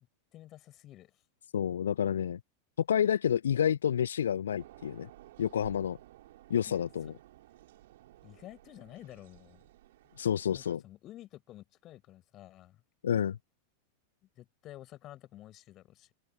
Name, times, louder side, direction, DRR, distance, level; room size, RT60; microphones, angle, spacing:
voice 1, 0.3-1.1 6.7-6.8 8.2-9.6 10.5-12.8 14.4-16.1, left 14 dB, 35° left, 5.4 m, -51 dB
voice 2, 1.5-2.4 2.8-5.1 5.4-6.0 6.5-7.1 10.2-10.8 13.0-13.4, left 9 dB, 65° left, 1.0 m, -29 dB
sound 1, 4.6-10.8, right 15 dB, 55° right, 6.9 m, -56 dB
figure-of-eight pair, 90°, 0 cm